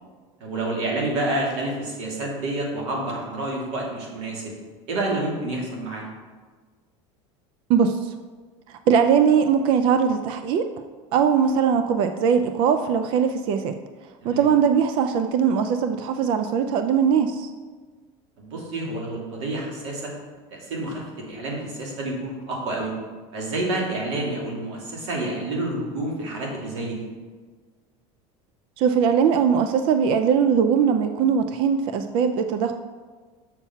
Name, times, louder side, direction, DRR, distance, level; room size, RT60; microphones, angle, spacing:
voice 1, 0.4-4.5 4.9-6.0 14.2-14.5 18.4-20.1 20.5-22.9 23.3-27.0, right 2 dB, 90° right, -1 dB, 2.6 m, -29 dB
voice 2, 7.7-8.1 8.9-10.7 11.1-13.8 14.2-17.5 28.8-32.7, right 7 dB, 35° right, 8 dB, 0.4 m, -20 dB
7.1 x 5.8 x 5.6 m, 1.4 s
cardioid pair, 180°, 14 cm